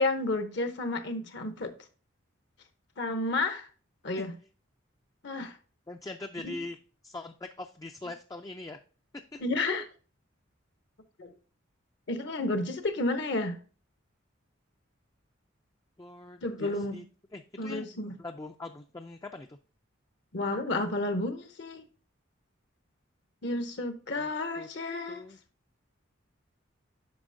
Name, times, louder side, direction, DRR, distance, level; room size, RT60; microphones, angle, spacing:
voice 1, 0.0-1.7 3.0-3.7 4.0-4.3 5.2-5.6 6.4-6.6 9.4-9.8 11.2-11.3 12.1-13.6 16.4-17.0 17.6-18.1 20.3-21.8 23.4-25.2, left 2 dB, 55° left, 0.8 m, -31 dB
voice 2, 5.9-6.8 7.0-8.8 9.3-9.4 16.0-17.0 17.3-17.9 18.2-19.6 24.2-24.3 24.6-24.7 25.1-25.4, left 2 dB, 15° left, 0.3 m, -42 dB
8.7 x 5.5 x 2.6 m
head